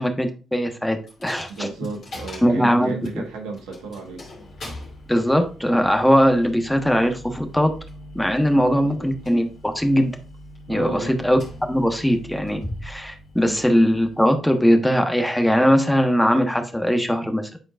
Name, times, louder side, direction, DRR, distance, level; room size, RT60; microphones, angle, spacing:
voice 1, 0.0-1.7 2.4-3.2 5.1-7.7 8.1-10.1 10.7-11.4 11.7-17.6, equal, 5° left, 5 dB, 1.2 m, -20 dB
Coin (dropping), 1.1-14.8, left 1 dB, 50° left, 2.5 m, -41 dB
voice 2, 1.5-4.3 8.5-9.1 10.7-11.2 13.4-13.6, right 3 dB, 70° right, 2 dB, 1.3 m, -33 dB
10.0 x 4.4 x 2.4 m, 0.35 s
figure-of-eight pair, 40°, 0 cm